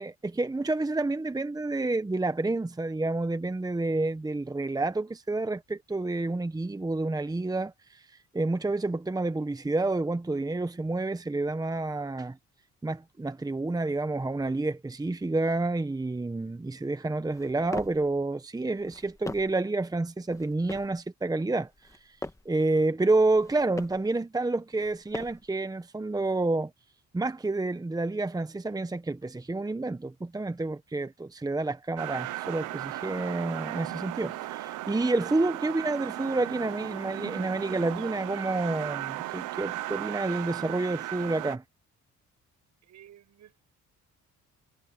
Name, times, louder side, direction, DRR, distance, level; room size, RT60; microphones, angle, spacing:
voice 1, 0.0-8.0 8.3-12.4 12.8-21.7 22.0-22.2 22.4-26.7 27.1-41.6, right 2 dB, 10° right, 1.0 m, -29 dB
sound 1, 17.3-18.1 18.8-19.7 20.3-21.0 21.7-22.6 23.3-24.1 24.8-25.6, left 2 dB, 10° left, 1.5 m, -41 dB
sound 2, 32.0-41.6, right 16 dB, 90° right, 0.9 m, -36 dB
voice 2, 42.8-43.6, right 11 dB, 70° right, 7.0 m, -54 dB
cardioid pair, 90°, 30 cm